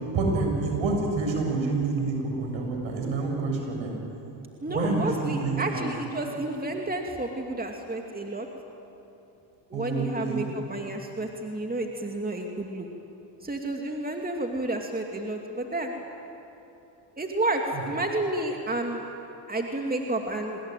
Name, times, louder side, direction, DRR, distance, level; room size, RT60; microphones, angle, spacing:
voice 1, 0.1-3.9 4.7-5.8 9.7-10.5, right 3 dB, 65° right, 2 dB, 7.1 m, -27 dB
voice 2, 4.6-8.5 9.7-12.9 13.4-15.9 17.2-19.0 19.5-20.6, right 2 dB, 20° right, 2 dB, 2.7 m, -30 dB
25.5 x 20.0 x 9.2 m, 2.9 s
supercardioid pair, 60°, 50 cm